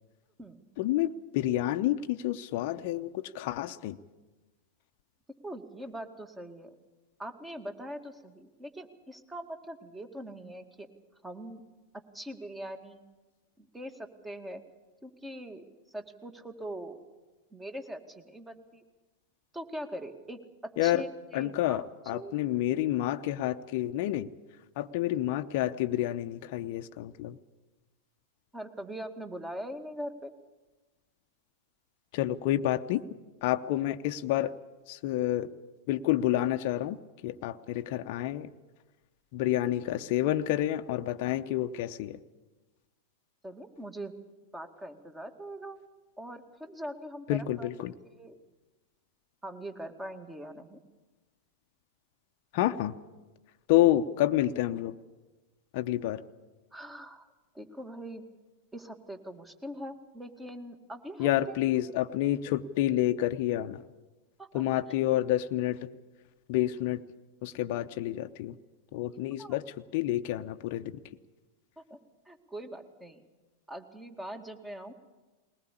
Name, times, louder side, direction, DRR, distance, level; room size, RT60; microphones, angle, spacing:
voice 1, 0.8-4.0 20.8-21.0 21.3-24.3 24.8-27.4 32.1-33.0 33.4-34.5 34.9-35.5 35.9-37.0 37.2-38.5 39.3-42.2 47.3-47.9 52.5-53.0 53.7-54.9 55.7-56.2 61.2-63.8 64.5-65.9 66.5-67.0 67.4-68.6 68.9-69.6 69.9-71.0, left 13 dB, 55° left, 8 dB, 0.8 m, -29 dB
voice 2, 5.4-6.7 7.2-10.9 11.2-11.6 12.1-13.0 13.6-14.6 15.0-17.0 17.5-18.8 19.5-22.4 28.5-30.3 43.4-44.1 44.5-45.8 46.2-47.7 48.2-48.4 49.4-50.8 56.7-58.2 58.7-61.5 64.4-64.6 69.4-69.6 71.9-72.0 72.3-73.2 73.7-74.9, right 1 dB, 10° right, 7 dB, 2.2 m, -42 dB
21.0 x 19.5 x 8.6 m, 1.2 s
figure-of-eight pair, 95°, 0 cm